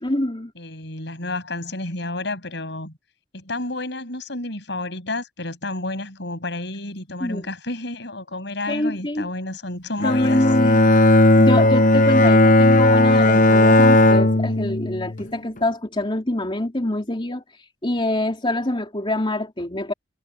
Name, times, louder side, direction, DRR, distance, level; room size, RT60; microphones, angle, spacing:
voice 1, 0.0-0.5 7.2-7.5 8.7-9.2 10.0-10.9 11.4-17.4 17.8-19.9, left 1 dB, 30° left, 3.4 m, -25 dB
voice 2, 0.6-2.9 3.3-10.7 12.0-12.2, left 2 dB, 65° left, 7.5 m, -31 dB
Bowed string instrument, 10.0-15.2, left 2 dB, 45° left, 0.9 m, -15 dB
head